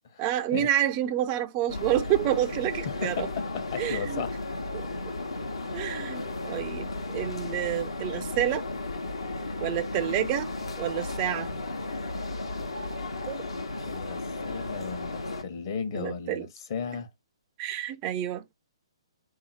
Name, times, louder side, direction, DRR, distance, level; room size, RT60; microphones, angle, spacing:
voice 1, 0.2-3.3 3.8-4.2 5.7-8.6 9.6-10.5 10.8-11.5 13.3-13.4 15.9-16.5 17.6-18.4, right 12 dB, 30° right, 0.3 m, -28 dB
sound 1, 1.7-15.4, left 2 dB, 75° left, 1.0 m, -34 dB
voice 2, 2.8-4.4 4.9-5.0 13.8-17.1, left 6 dB, 45° left, 0.9 m, -35 dB
3.7 x 2.7 x 2.7 m
figure-of-eight pair, 130°, 3 cm